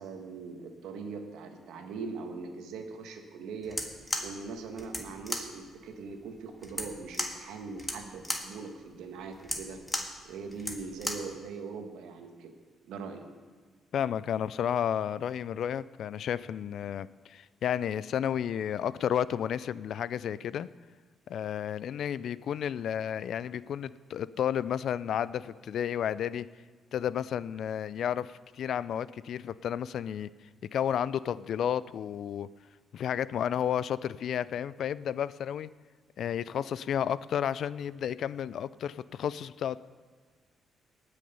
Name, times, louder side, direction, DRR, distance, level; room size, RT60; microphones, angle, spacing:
voice 1, 0.0-3.8 4.2-9.8 10.2-12.5 12.9-13.3, right 4 dB, 85° right, 5 dB, 1.4 m, -41 dB
sound 1, 3.6-11.3, left 1 dB, 10° left, 1.6 m, -37 dB
voice 2, 13.9-20.7 21.3-26.5 26.9-30.3 30.7-32.5 32.9-35.7 36.2-39.8, left 9 dB, 65° left, 18 dB, 0.3 m, -32 dB
18.5 x 6.6 x 5.5 m, 1.5 s
cardioid pair, 90°, 0 cm